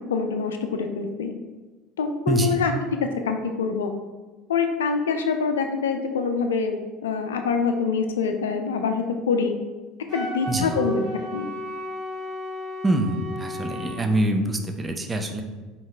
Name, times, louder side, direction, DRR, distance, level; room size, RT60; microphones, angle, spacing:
voice 1, 0.1-1.3 2.0-2.7 3.2-3.9 4.5-9.5 10.1-11.0 11.3-11.5, left 5 dB, 75° left, 6 dB, 0.4 m, -25 dB
voice 2, 2.3-2.6 10.5-10.8 12.8-15.4, right 1 dB, 20° right, 5 dB, 0.6 m, -25 dB
Wind instrument woodwind instrument, 10.1-14.0, equal, 50° right, 1.0 m, -33 dB
4.6 x 2.9 x 3.3 m, 1.3 s
figure-of-eight pair, 65°, 0 cm